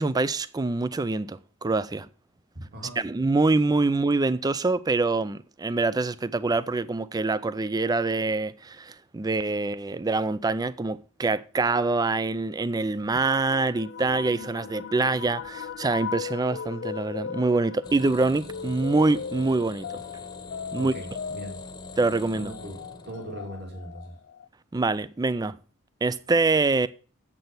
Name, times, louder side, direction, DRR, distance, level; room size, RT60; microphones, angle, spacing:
voice 1, 0.0-2.1 3.0-20.0 20.7-20.9 22.0-22.5 24.7-25.6 26.0-26.9, right 3 dB, 20° right, 0.4 m, -25 dB
voice 2, 2.5-3.0 20.7-21.1 21.3-21.5 22.4-22.8 23.1-24.2, equal, 50° right, 2.3 m, -39 dB
sound 1, 13.5-24.5, left 7 dB, 50° left, 0.4 m, -38 dB
sound 2, 17.8-23.7 23.9-24.1, left 2 dB, 20° left, 1.0 m, -44 dB
7.8 x 6.1 x 6.8 m
head